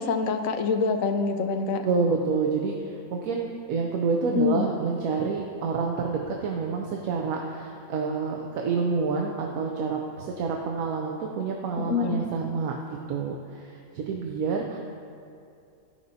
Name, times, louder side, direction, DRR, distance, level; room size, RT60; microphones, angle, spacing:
voice 1, 0.0-1.9 4.3-4.6 11.8-12.3, left 5 dB, 75° left, 6 dB, 1.0 m, -26 dB
voice 2, 1.8-14.8, right 5 dB, 80° right, 1 dB, 1.1 m, -28 dB
14.0 x 5.3 x 2.7 m, 2.5 s
omnidirectional pair, 1.5 m